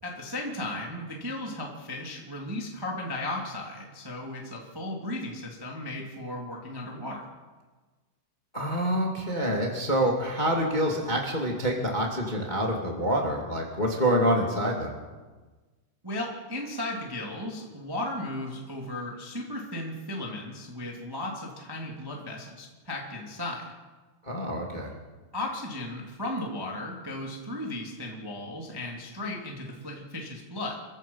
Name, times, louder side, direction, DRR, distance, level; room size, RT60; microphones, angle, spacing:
voice 1, 0.0-7.2 16.0-23.7 25.3-30.7, left 1 dB, 5° right, -1 dB, 1.8 m, -35 dB
voice 2, 8.5-14.9 24.2-24.9, equal, 25° left, 0 dB, 0.9 m, -26 dB
29.0 x 15.5 x 5.7 m, 1.3 s
omnidirectional pair, 5.7 m